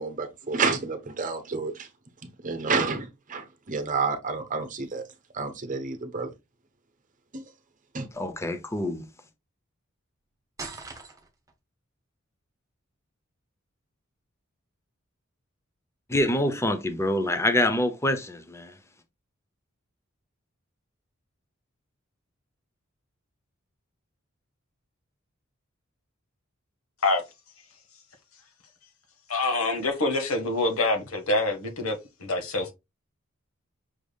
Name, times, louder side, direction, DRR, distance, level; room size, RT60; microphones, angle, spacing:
voice 1, 0.0-1.9 2.2-5.0 5.3-6.3 7.3-7.4 7.9-8.1, right 4 dB, 40° right, 0.8 m, -29 dB
voice 2, 8.1-9.0 16.1-18.7, left 1 dB, 15° left, 0.6 m, -26 dB
sound 1, 10.6-11.5, right 3 dB, 15° right, 1.0 m, -40 dB
voice 3, 29.3-32.7, left 2 dB, 90° left, 1.3 m, -26 dB
6.1 x 3.4 x 2.3 m
head